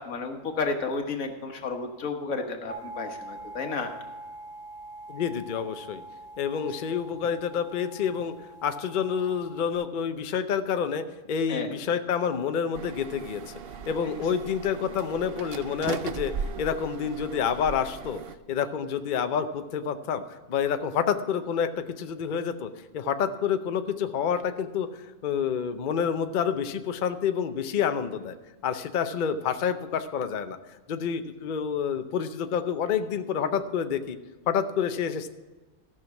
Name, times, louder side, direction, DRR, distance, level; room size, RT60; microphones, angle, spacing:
voice 1, 0.0-3.9 11.5-11.7, left 4 dB, 90° left, 5 dB, 1.7 m, -32 dB
sound 1, 2.7-9.7, right 2 dB, 30° right, 2.1 m, -44 dB
voice 2, 5.1-6.0 6.4-8.3 8.6-13.5 13.9-18.2 18.5-24.9 25.2-28.3 28.6-30.6 30.9-34.2 34.5-35.3, left 7 dB, 45° left, 9 dB, 0.7 m, -28 dB
sound 2, 12.7-18.4, right 6 dB, 55° right, 0.7 m, -37 dB
15.0 x 6.2 x 5.9 m, 1.2 s
omnidirectional pair, 1.4 m